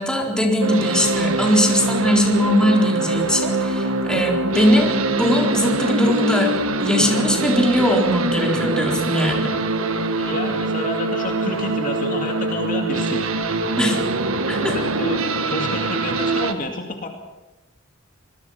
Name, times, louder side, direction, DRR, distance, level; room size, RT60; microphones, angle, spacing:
voice 1, 0.0-4.9 5.2-6.5 6.8-9.5 13.8-14.0 14.5-14.8, left 1 dB, 5° left, 0 dB, 4.1 m, -20 dB
sound 1, 0.6-16.5, right 2 dB, 80° right, 1.5 m, -23 dB
voice 2, 10.2-14.0 14.7-15.2 15.5-17.1, left 2 dB, 40° left, 2 dB, 2.4 m, -29 dB
25.5 x 21.0 x 5.8 m, 1.1 s
head